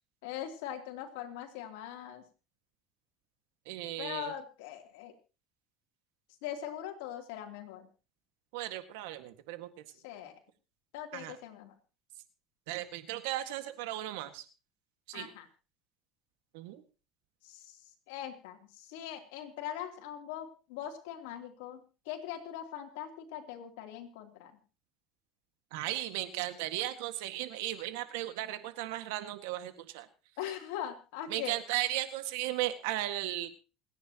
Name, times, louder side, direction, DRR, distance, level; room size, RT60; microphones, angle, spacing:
voice 1, 0.2-2.2 4.0-5.1 6.4-7.9 10.0-10.3 10.9-11.7 15.1-15.4 17.4-17.8 18.1-24.5 30.4-31.6, left 10 dB, 90° left, 3 dB, 3.1 m, -41 dB
voice 2, 3.7-4.3 8.5-9.7 11.1-11.4 12.7-14.5 15.1-15.3 16.5-16.8 25.7-30.1 31.3-33.5, right 14 dB, 85° right, 9 dB, 1.8 m, -36 dB
28.5 x 10.0 x 3.0 m, 0.33 s
supercardioid pair, 115°, 0 cm